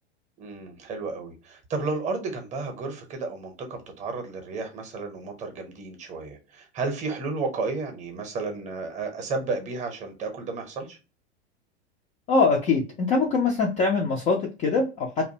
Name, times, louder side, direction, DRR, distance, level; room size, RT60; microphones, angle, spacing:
voice 1, 0.4-11.0, right 3 dB, 20° right, 5 dB, 0.7 m, -32 dB
voice 2, 12.3-15.3, left 4 dB, 20° left, 0 dB, 0.3 m, -23 dB
2.5 x 2.2 x 2.6 m, 0.30 s
figure-of-eight pair, 90°, 34 cm